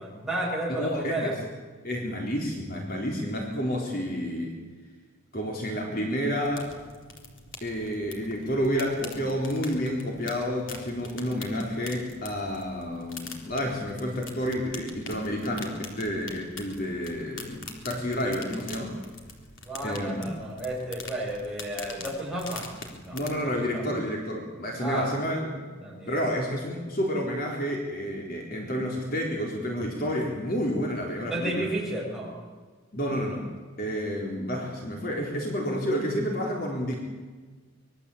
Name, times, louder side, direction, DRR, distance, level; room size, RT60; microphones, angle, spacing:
voice 1, 0.0-1.4 19.7-22.7 23.1-24.0 24.8-25.1 25.8-26.2 31.3-32.4, right 1 dB, ahead, -4 dB, 7.1 m, -32 dB
voice 2, 0.8-1.3 1.8-4.5 5.3-6.7 7.6-18.9 19.8-20.3 23.1-25.5 26.1-31.7 32.9-33.5 33.8-37.0, equal, 40° left, 0 dB, 3.8 m, -30 dB
sound 1, 6.4-23.3, left 3 dB, 60° left, 3.9 m, -44 dB
25.0 x 22.0 x 8.5 m, 1.4 s
head